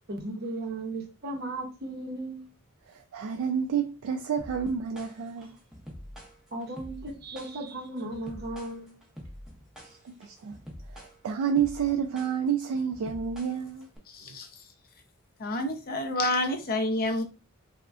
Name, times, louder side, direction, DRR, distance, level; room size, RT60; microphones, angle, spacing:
voice 1, 0.1-2.5 6.5-8.9, right 2 dB, 45° right, 0.7 m, -36 dB
voice 2, 2.9-5.6 10.0-10.6 10.9-13.9, right 7 dB, 65° right, 0.3 m, -29 dB
sound 1, 4.4-14.0, equal, ahead, 0.6 m, -46 dB
voice 3, 14.1-14.5 15.4-17.2, left 1 dB, 45° left, 0.5 m, -29 dB
3.5 x 2.1 x 2.4 m
head